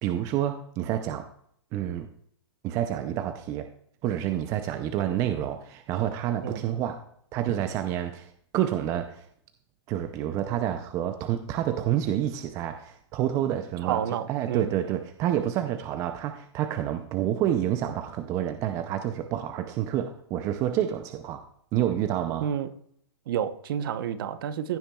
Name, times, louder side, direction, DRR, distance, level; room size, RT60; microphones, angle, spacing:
voice 1, 0.0-1.3 1.7-2.1 2.6-3.7 4.0-7.0 7.3-9.3 9.9-14.0 14.3-21.4 21.7-22.5, right 11 dB, 20° right, 8 dB, 0.5 m, -28 dB
voice 2, 13.8-14.8 22.4-22.7 23.3-24.8, right 9 dB, 50° right, 12 dB, 0.9 m, -30 dB
15.0 x 7.2 x 2.3 m, 0.67 s
hypercardioid pair, 155°, 15 cm